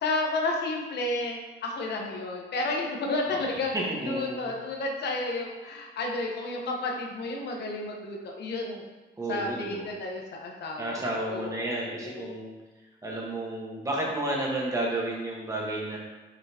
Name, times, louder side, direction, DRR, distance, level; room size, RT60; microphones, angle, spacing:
voice 1, 0.0-3.7 4.1-8.8 9.3-11.0 11.2-12.4, left 2 dB, 60° left, 1 dB, 1.2 m, -31 dB
voice 2, 3.4-4.5 9.2-9.9 10.8-12.5 13.0-16.0, right 1 dB, 15° right, -3 dB, 1.5 m, -32 dB
6.5 x 5.6 x 3.0 m, 1.2 s
cardioid pair, 140°, 19 cm